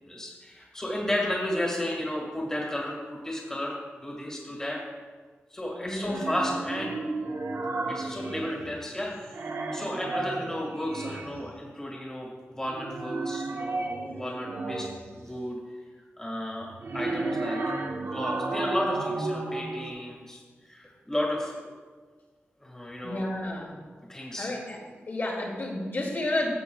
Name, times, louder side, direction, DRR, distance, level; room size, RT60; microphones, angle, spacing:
voice 1, 0.0-4.8 5.5-6.9 7.9-15.6 16.2-17.6 18.1-21.8 22.6-23.3 24.1-24.5, left 1 dB, 15° left, -3 dB, 1.7 m, -33 dB
voice 2, 5.8-6.3 23.0-23.7 24.4-24.8 25.1-26.5, left 1 dB, 55° left, -4 dB, 2.1 m, -31 dB
sound 1, 6.0-8.9 9.2-11.5 12.6-15.2 16.6-19.9, right 3 dB, 75° right, 0.9 m, -33 dB
15.5 x 7.9 x 2.3 m, 1.5 s
wide cardioid pair, 155°, 4 cm